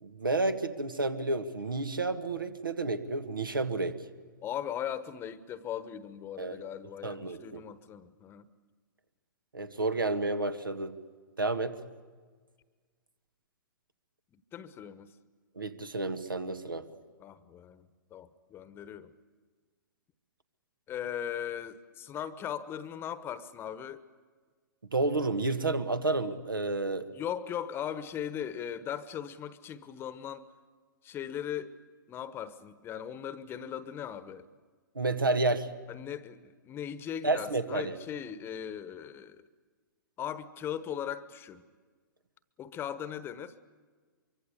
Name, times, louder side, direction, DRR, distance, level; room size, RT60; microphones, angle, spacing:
voice 1, 0.0-4.0 6.4-6.6 7.0-7.6 9.5-11.0 11.4-11.8 15.6-16.9 24.9-27.1 35.0-35.7 37.2-38.0, right 2 dB, 75° right, 9 dB, 1.8 m, -30 dB
voice 2, 4.4-8.5 14.3-15.1 17.2-19.1 20.9-24.0 27.1-30.5 31.0-31.7 32.1-34.5 35.9-39.4 40.2-41.7 42.6-43.5, left 9 dB, 20° left, 14 dB, 1.2 m, -38 dB
24.5 x 24.0 x 8.3 m, 1.5 s
figure-of-eight pair, 110°, 11 cm